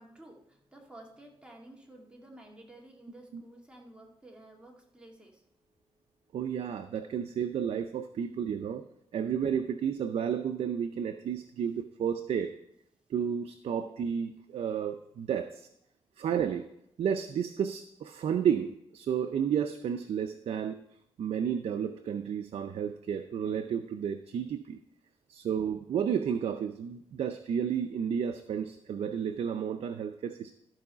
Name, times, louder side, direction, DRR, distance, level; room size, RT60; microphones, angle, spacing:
voice 1, 0.0-5.5, right 1 dB, 10° right, -1 dB, 2.1 m, -52 dB
voice 2, 6.3-8.8 9.1-12.5 13.1-15.7 16.2-16.7 17.0-20.8 21.2-24.8 25.3-30.5, right 8 dB, 80° right, 7 dB, 0.5 m, -32 dB
13.5 x 4.8 x 5.6 m, 0.77 s
cardioid pair, 105°, 11 cm